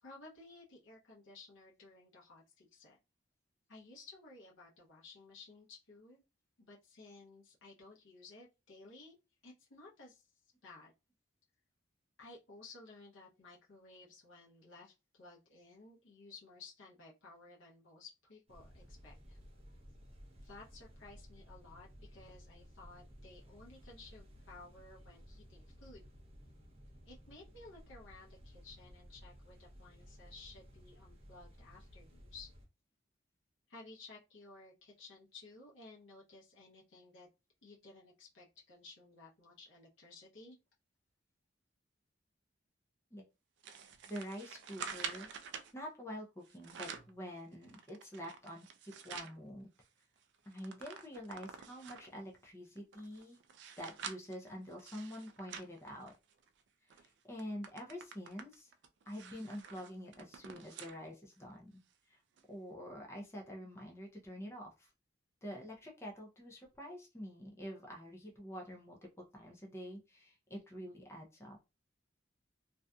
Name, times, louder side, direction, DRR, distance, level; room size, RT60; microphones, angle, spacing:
voice 1, 0.0-3.0 3.7-6.2 6.6-9.1 9.4-10.2 10.6-10.9 12.2-19.4 20.4-26.1 27.1-32.5 33.7-37.3 37.6-40.6, left 3 dB, 80° left, -3 dB, 0.7 m, -56 dB
sound 1, 18.5-32.7, equal, 30° right, 0.7 m, -56 dB
sound 2, 43.6-45.7 46.4-47.2 47.6-49.4 49.8-49.9 50.2-52.2 52.8-56.5 56.9-57.1 57.4-61.0 61.4-61.5 62.4-62.5, right 6 dB, 60° right, 0.3 m, -48 dB
voice 2, 44.1-45.3 45.7-49.8 50.5-53.4 53.8-56.1 56.8-58.7 59.1-61.8 62.1-62.2 62.5-64.9 65.4-71.6, equal, 15° left, 0 dB, 0.4 m, -47 dB
2.6 x 2.3 x 2.2 m, 0.27 s
head